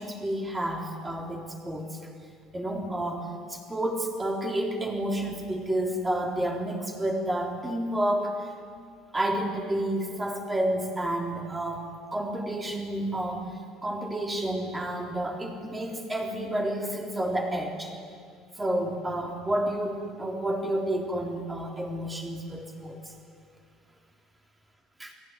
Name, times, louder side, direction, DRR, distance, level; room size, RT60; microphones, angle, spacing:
voice 1, 0.0-2.0 2.5-8.4 9.1-13.5 13.8-17.9 18.6-23.1 25.0-25.1, right 1 dB, 10° right, 1 dB, 3.6 m, -30 dB
30.0 x 18.5 x 9.8 m, 2.1 s
cardioid pair, 160°, 0 cm